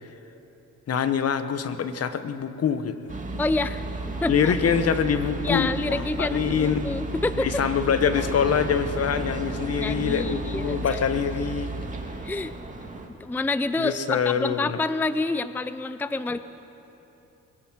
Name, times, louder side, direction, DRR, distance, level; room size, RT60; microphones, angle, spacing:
voice 1, 0.9-3.1 4.3-6.9 7.4-11.7 13.8-14.8, left 7 dB, 55° left, 11 dB, 1.2 m, -25 dB
sound 1, 3.1-13.1, right 2 dB, 25° right, 2.4 m, -33 dB
voice 2, 3.4-3.8 4.2-4.5 5.4-7.6 9.8-11.0 12.2-12.5 13.2-16.4, left 2 dB, 5° left, 13 dB, 0.5 m, -28 dB
22.5 x 16.0 x 7.5 m, 3.0 s
cardioid pair, 90°, 30 cm